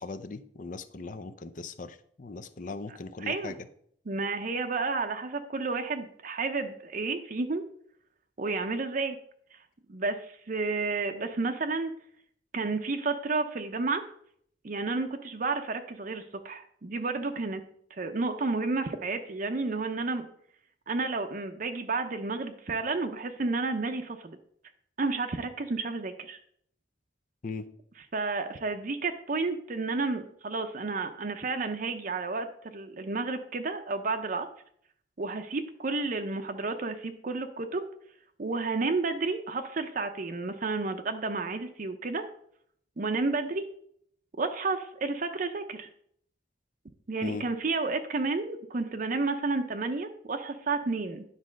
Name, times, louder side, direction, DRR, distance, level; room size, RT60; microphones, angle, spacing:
voice 1, 0.0-3.6 27.4-27.7 47.2-47.5, left 3 dB, 45° left, 11 dB, 0.5 m, -39 dB
voice 2, 2.9-3.5 4.1-7.6 8.4-9.2 9.5-9.6 9.9-11.9 12.5-14.0 14.6-17.6 17.9-20.3 20.9-24.4 25.0-26.4 28.1-34.5 35.2-37.9 38.4-42.2 43.0-43.6 44.4-45.9 47.1-51.2, right 3 dB, 45° right, 6 dB, 0.6 m, -31 dB
9.8 x 4.1 x 6.3 m, 0.65 s
head